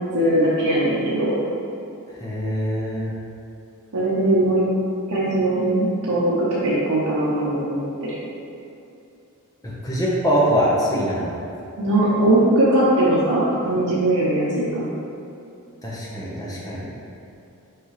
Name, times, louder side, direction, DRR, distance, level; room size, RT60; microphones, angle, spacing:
voice 1, 0.1-1.4 3.9-4.7 5.1-8.2 11.8-14.9, right 1 dB, 75° right, -9 dB, 0.9 m, -20 dB
voice 2, 2.2-3.1 9.6-11.3 15.8-16.9, equal, 15° left, -6 dB, 1.1 m, -23 dB
5.8 x 4.9 x 3.3 m, 2.7 s
head